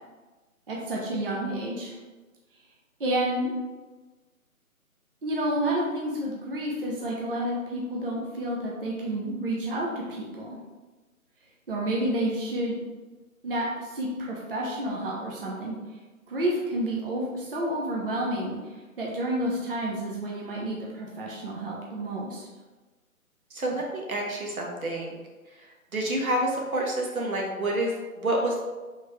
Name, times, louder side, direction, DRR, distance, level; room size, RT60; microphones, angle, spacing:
voice 1, 0.7-2.0 3.0-3.5 5.2-10.6 11.7-12.8 13.4-15.8 16.3-22.5, right 1 dB, 40° right, -4 dB, 0.8 m, -30 dB
voice 2, 23.5-25.2 25.9-28.6, right 1 dB, 75° right, -1 dB, 1.3 m, -28 dB
4.7 x 3.7 x 3.0 m, 1.3 s
figure-of-eight pair, 145°, 43 cm